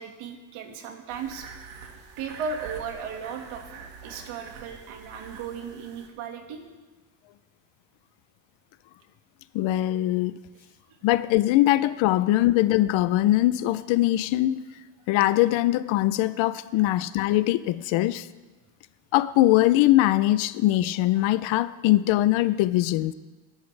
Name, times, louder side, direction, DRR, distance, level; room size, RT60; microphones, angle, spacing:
voice 1, 0.0-1.5 2.2-3.7 4.0-6.6 16.8-17.0 21.4-21.5, right 6 dB, 85° right, 2.0 m, -36 dB
sound 1, 1.1-6.1, right 6 dB, 65° right, 1.9 m, -45 dB
voice 2, 9.5-10.4 11.0-14.6 15.1-18.3 19.1-23.1, left 15 dB, 75° left, 0.6 m, -22 dB
21.5 x 11.0 x 3.3 m
cardioid pair, 170°, 47 cm